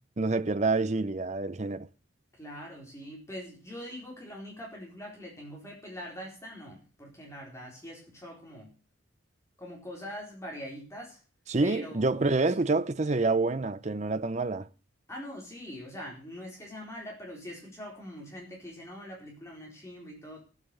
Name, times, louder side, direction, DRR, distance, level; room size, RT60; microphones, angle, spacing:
voice 1, 0.2-1.9 11.5-14.7, right 3 dB, 35° right, 0.6 m, -27 dB
voice 2, 2.4-8.7 9.6-11.2 11.6-12.6 15.1-20.4, equal, 15° left, 4.1 m, -43 dB
15.0 x 8.2 x 6.8 m
head